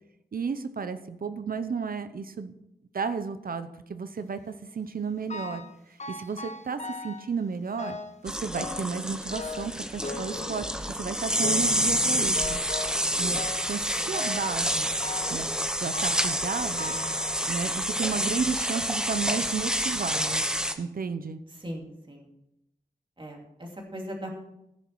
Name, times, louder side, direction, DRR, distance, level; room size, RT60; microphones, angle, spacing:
voice 1, 0.3-2.5 2.9-5.7 6.1-8.0 8.2-10.7 11.0-12.6 13.2-13.4 13.7-14.9 15.3-15.5 15.8-17.0 17.5-20.4 20.8-21.4, right 5 dB, 60° right, 10 dB, 0.8 m, -32 dB
sound 1, 5.3-5.7 6.0-7.3 7.8-8.2 8.5-9.0 9.3-11.0 11.4-11.9 12.3-13.0 13.4-13.8 14.1-14.6 15.0-15.5 15.9-16.4 16.8-17.8 18.5-18.6 19.4-19.5 19.9-20.0, left 3 dB, 45° left, 0.8 m, -39 dB
sound 2, 8.3-20.7, equal, 5° right, 0.9 m, -28 dB
voice 2, 21.5-22.3 23.2-24.3, equal, 30° right, 0 dB, 2.7 m, -39 dB
15.5 x 7.2 x 4.7 m, 0.85 s
wide cardioid pair, 120°, 16 cm